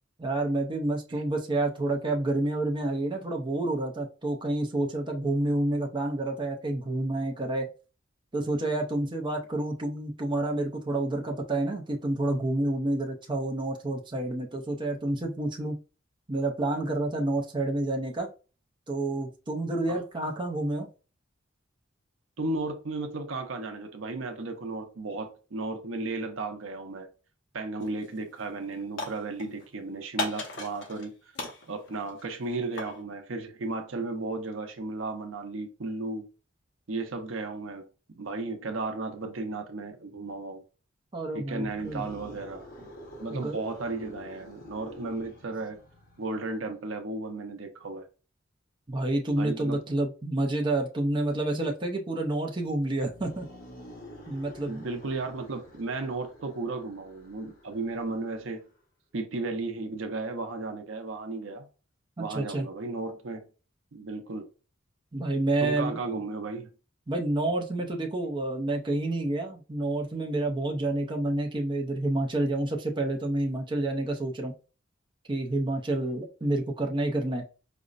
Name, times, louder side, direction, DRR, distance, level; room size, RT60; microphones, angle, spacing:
voice 1, 0.2-7.7 8.3-15.8 16.3-18.3 18.9-20.9 41.1-42.0 43.3-43.6 48.9-53.5 54.3-54.8 62.2-62.7 65.1-66.0 67.1-74.5 75.3-77.4, right 2 dB, 25° right, 0.6 m, -29 dB
voice 2, 22.4-27.1 27.5-31.1 31.7-36.2 36.9-37.9 38.2-40.6 41.3-42.9 43.2-45.8 46.2-48.1 49.4-49.8 54.6-58.6 59.1-61.7 62.2-63.4 63.9-64.5 65.6-66.7, right 3 dB, 80° right, 0.7 m, -34 dB
sound 1, 27.8-28.1 28.4-29.7 30.2-31.1 31.4-33.0, left 2 dB, 65° left, 0.9 m, -36 dB
sound 2, 41.5-46.7 53.0-58.6, equal, 45° left, 1.2 m, -48 dB
5.0 x 2.1 x 2.4 m
head